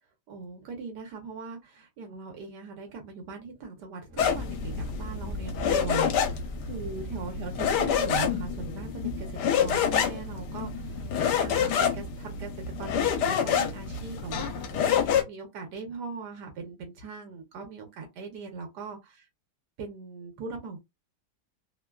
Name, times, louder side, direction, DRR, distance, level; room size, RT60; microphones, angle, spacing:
voice 1, 0.3-19.2 19.8-20.8, right 4 dB, 80° right, 1.3 m, -40 dB
Thunder / Explosion, 4.1-12.3, left 2 dB, 50° right, 1.2 m, -41 dB
sound 1, 4.2-15.2, left 7 dB, 80° left, 1.2 m, -28 dB
3.1 x 2.2 x 2.2 m
omnidirectional pair, 1.8 m